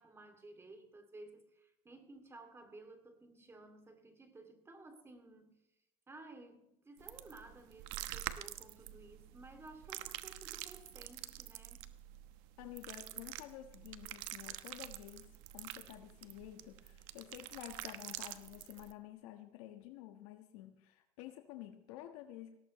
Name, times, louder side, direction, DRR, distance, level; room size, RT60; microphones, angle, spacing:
voice 1, 0.0-5.6 6.1-11.9, right 2 dB, 15° right, 5 dB, 2.6 m, -55 dB
sound 1, 7.0-18.9, right 14 dB, 75° right, 1.1 m, -47 dB
voice 2, 12.6-22.6, left 13 dB, 80° left, 5 dB, 1.5 m, -51 dB
18.5 x 18.0 x 3.2 m, 0.87 s
cardioid pair, 135°, 17 cm